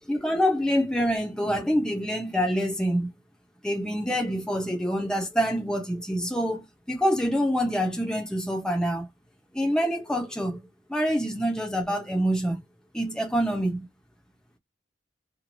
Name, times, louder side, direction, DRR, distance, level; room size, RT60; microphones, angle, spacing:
voice 1, 0.1-3.1 3.6-9.1 9.5-10.6 10.9-12.6 12.9-13.9, equal, 5° left, 0.7 m, -26 dB
3.0 x 2.4 x 2.6 m
head